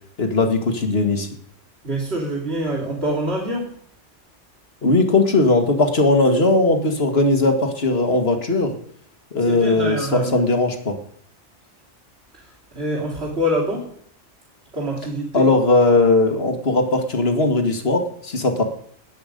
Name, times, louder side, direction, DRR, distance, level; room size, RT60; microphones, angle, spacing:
voice 1, 0.2-1.3 4.8-8.8 9.3-10.9 15.3-18.6, left 2 dB, 55° left, 5 dB, 2.2 m, -18 dB
voice 2, 1.8-3.8 9.4-10.3 12.3-13.9 14.7-15.5, equal, 60° right, -2 dB, 3.3 m, -25 dB
19.0 x 8.3 x 5.3 m, 0.62 s
omnidirectional pair, 1.2 m